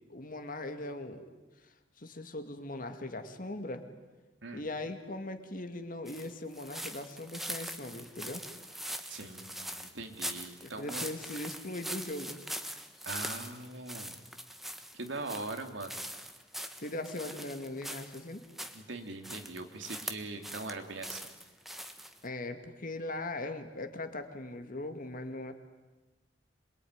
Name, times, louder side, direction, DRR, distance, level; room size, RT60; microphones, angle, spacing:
voice 1, 0.1-1.2 1.6-3.9 4.5-8.4 10.6-12.4 16.8-18.4 22.2-25.5, left 2 dB, 50° left, 7 dB, 2.3 m, -40 dB
sound 1, 6.1-18.8 19.2-20.7 21.0-22.2, equal, ahead, 1.4 m, -42 dB
voice 2, 9.1-11.1 13.0-14.2 14.9-16.0 18.7-21.2, right 3 dB, 85° right, 5 dB, 2.8 m, -41 dB
26.5 x 22.0 x 9.7 m, 1.2 s
head